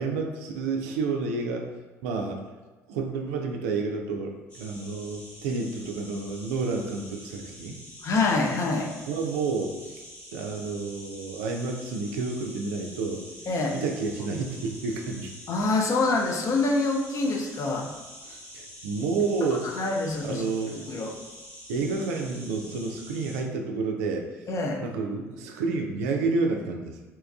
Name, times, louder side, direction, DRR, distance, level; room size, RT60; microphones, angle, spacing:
voice 1, 0.0-1.7 2.0-2.4 2.9-7.8 9.1-10.0 10.3-13.2 13.7-15.3 18.2-19.8 20.2-20.9 21.7-24.3 24.8-27.0, right 4 dB, 70° right, 2 dB, 0.4 m, -30 dB
sound 1, 4.5-23.4, equal, 65° left, 1.1 m, -46 dB
voice 2, 8.0-8.9 13.5-13.8 15.5-17.9 19.7-20.4 20.7-21.1 24.5-24.8, left 3 dB, 40° left, 1 dB, 0.5 m, -26 dB
2.9 x 2.3 x 2.2 m, 1.2 s
figure-of-eight pair, 50°, 8 cm